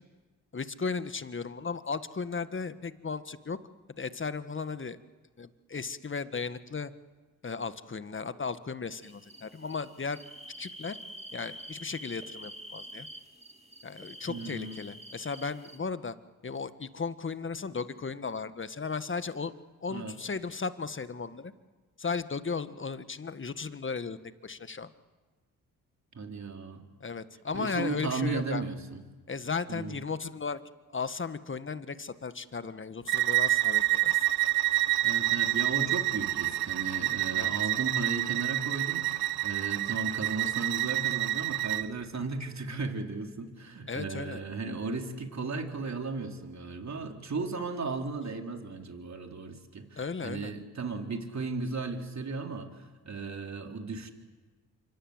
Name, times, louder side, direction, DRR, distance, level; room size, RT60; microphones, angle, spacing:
voice 1, 0.5-3.6 4.0-5.0 5.4-6.9 7.4-10.2 10.6-11.0 11.3-13.1 13.8-16.1 16.4-19.5 19.8-21.5 22.0-24.2 24.4-24.9 27.0-28.7 29.3-30.6 30.9-34.2 37.3-37.5 43.9-44.4 50.0-50.5, left 5 dB, 30° left, 12 dB, 1.6 m, -35 dB
sound 1, 9.0-15.8, equal, 15° right, 2.6 m, -47 dB
voice 2, 14.3-14.8 19.9-20.1 26.1-26.8 27.5-29.0 29.7-30.0 35.0-54.1, right 3 dB, 45° right, 4 dB, 3.8 m, -35 dB
Bowed string instrument, 33.1-41.9, right 17 dB, 75° right, 0.9 m, -28 dB
27.0 x 24.5 x 8.0 m, 1.3 s
supercardioid pair, 50°, 38 cm